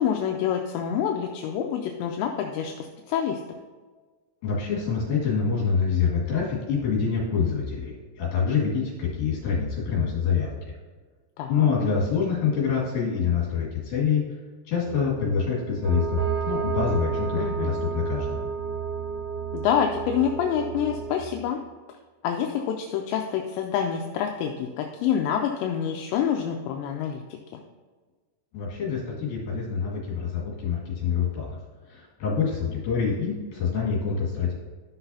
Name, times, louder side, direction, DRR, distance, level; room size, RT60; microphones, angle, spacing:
voice 1, 0.0-3.4 11.4-11.7 17.3-17.7 19.5-21.6 22.2-27.2, left 8 dB, 85° left, 3 dB, 2.6 m, -27 dB
voice 2, 4.4-10.7 11.5-14.2 14.7-16.2 16.5-18.4 28.5-31.5 31.9-34.5, left 6 dB, 55° left, -5 dB, 3.5 m, -26 dB
sound 1, 14.8-21.2, right 7 dB, 60° right, 4.6 m, -31 dB
13.5 x 5.9 x 2.7 m, 1.4 s
omnidirectional pair, 5.5 m